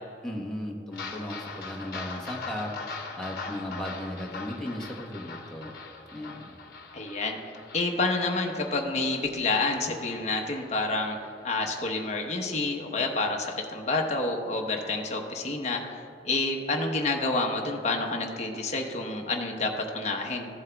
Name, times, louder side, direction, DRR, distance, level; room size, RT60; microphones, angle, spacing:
voice 1, 0.2-5.7 6.1-6.6, left 1 dB, 5° left, -2 dB, 1.1 m, -36 dB
sound 1, 0.9-11.6 12.0-12.1 12.5-12.6 13.0-13.1, left 4 dB, 55° left, 1.1 m, -42 dB
voice 2, 6.9-7.4 7.7-15.8 16.2-20.5, left 3 dB, 35° left, 2 dB, 0.9 m, -28 dB
14.5 x 7.9 x 2.3 m, 2.8 s
head